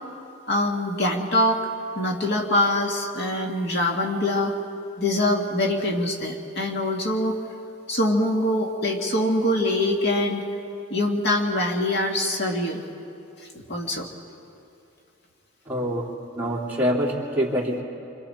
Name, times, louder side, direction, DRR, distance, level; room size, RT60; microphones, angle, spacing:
voice 1, 0.5-1.6 2.0-4.5 5.0-7.4 7.9-10.4 10.9-12.8 13.7-14.1, left 1 dB, 55° left, 0 dB, 2.0 m, -24 dB
voice 2, 15.7-16.1 16.3-17.8, equal, 10° right, -4 dB, 2.9 m, -25 dB
29.0 x 26.0 x 4.4 m, 2.7 s
head